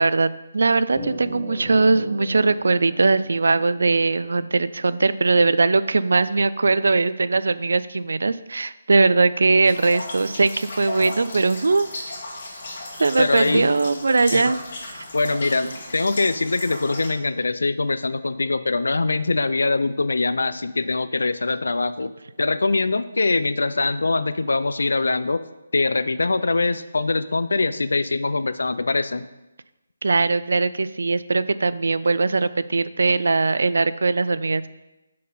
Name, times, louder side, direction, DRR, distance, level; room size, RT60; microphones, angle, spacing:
voice 1, 0.0-11.9 13.0-14.6 15.6-15.7 30.0-34.7, right 3 dB, 75° right, 15 dB, 0.3 m, -20 dB
sound 1, 1.0-5.6, equal, 5° left, 1.2 m, -38 dB
sound 2, 9.7-17.1, left 2 dB, 45° left, 1.8 m, -35 dB
voice 2, 13.2-13.7 14.3-14.5 15.1-22.1 22.4-25.4 25.7-29.2, left 3 dB, 90° left, 14 dB, 0.4 m, -23 dB
6.4 x 4.3 x 5.4 m, 1.0 s
hypercardioid pair, 170°, 0 cm